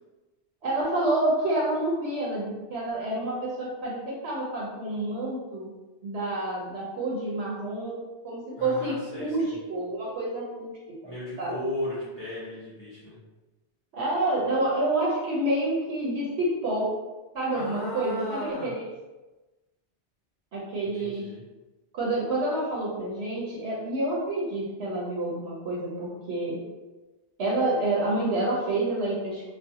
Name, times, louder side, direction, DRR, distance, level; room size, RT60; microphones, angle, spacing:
voice 1, 0.6-5.7 6.0-11.1 11.4-11.5 13.9-16.9 17.3-18.8 20.5-21.3 21.9-26.6 27.4-29.5, right 2 dB, 70° right, -5 dB, 0.9 m, -28 dB
voice 2, 8.6-9.5 11.0-13.2 17.5-18.8 20.8-21.4, left 1 dB, 30° left, -10 dB, 0.5 m, -36 dB
2.4 x 2.1 x 2.7 m, 1.1 s
omnidirectional pair, 1.2 m